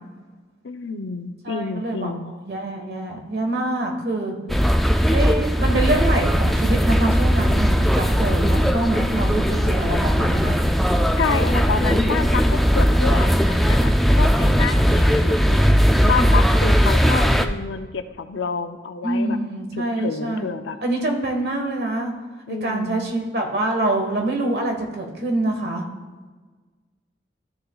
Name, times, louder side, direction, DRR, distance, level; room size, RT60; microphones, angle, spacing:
voice 1, 0.6-2.3 11.2-15.6 16.0-19.4 20.0-20.8 22.5-23.1, left 5 dB, 90° left, 9 dB, 0.6 m, -28 dB
voice 2, 1.4-2.1 2.4-4.4 5.1-10.6 19.0-20.5 20.8-22.1 22.5-25.8, right 2 dB, 55° right, 2 dB, 1.4 m, -25 dB
sound 1, 4.5-17.5, equal, ahead, 0.3 m, -18 dB
13.5 x 6.7 x 2.4 m, 1.4 s
head